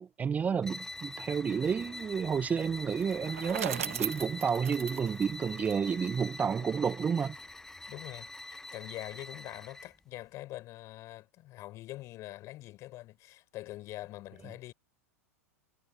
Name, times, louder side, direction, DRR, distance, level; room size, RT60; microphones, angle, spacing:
voice 1, 0.0-7.4, right 6 dB, 20° right, 0.9 m, -31 dB
sound 1, 0.6-10.0, left 2 dB, 5° left, 0.6 m, -45 dB
Sliding door, 0.9-8.6, left 7 dB, 20° left, 4.6 m, -57 dB
Bicycle, 2.9-6.2, right 10 dB, 65° right, 1.6 m, -38 dB
voice 2, 7.9-14.7, left 16 dB, 40° left, 4.3 m, -44 dB
figure-of-eight pair, 90°, 8 cm